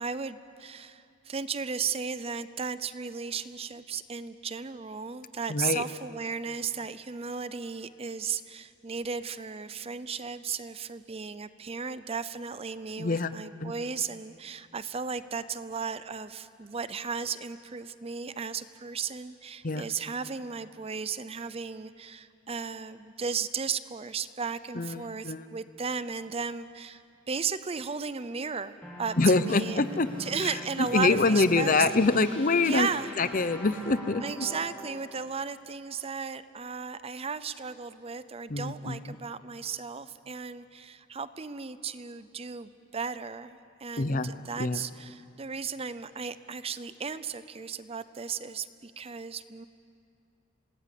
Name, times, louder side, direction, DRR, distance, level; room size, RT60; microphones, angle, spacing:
voice 1, 0.0-27.0 27.3-29.8 30.2-31.7 32.6-33.1 34.2-49.7, right 5 dB, 30° right, 14 dB, 0.6 m, -35 dB
voice 2, 5.5-5.8 13.0-13.3 13.6-13.7 19.6-19.8 24.8-25.4 29.2-30.1 30.9-32.9 33.2-34.4 38.5-39.2 44.0-44.3 44.6-44.8, left 3 dB, 40° left, 13 dB, 0.7 m, -25 dB
sound 1, 28.8-35.0, left 1 dB, 5° left, 4.0 m, -43 dB
27.0 x 19.5 x 8.5 m, 2.5 s
head